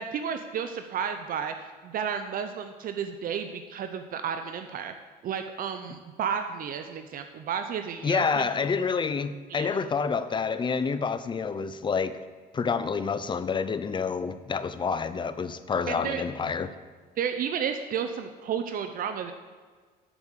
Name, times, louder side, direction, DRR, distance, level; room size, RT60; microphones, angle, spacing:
voice 1, 0.0-4.9 5.2-8.5 9.5-9.7 15.9-16.2 17.2-19.3, right 7 dB, 55° right, 7 dB, 0.7 m, -32 dB
voice 2, 8.0-12.2 12.5-16.7, left 5 dB, 30° left, 12 dB, 0.6 m, -28 dB
11.0 x 5.3 x 6.6 m, 1.5 s
cardioid pair, 110°, 17 cm